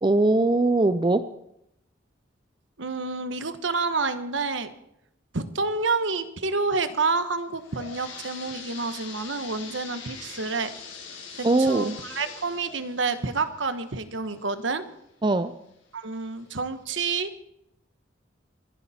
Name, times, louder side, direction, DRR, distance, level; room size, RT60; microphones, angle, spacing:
voice 1, 0.0-1.2 11.4-12.0 15.2-15.5, right 2 dB, 25° right, 11 dB, 0.5 m, -21 dB
voice 2, 2.8-4.7 5.3-10.7 11.3-14.8 15.9-17.4, right 4 dB, 70° right, 10 dB, 1.2 m, -28 dB
sound 1, 7.4-15.0 15.5-15.6 16.3-16.4 16.8-16.9, left 5 dB, 80° left, 6.8 m, -43 dB
25.5 x 11.5 x 4.3 m, 0.78 s
head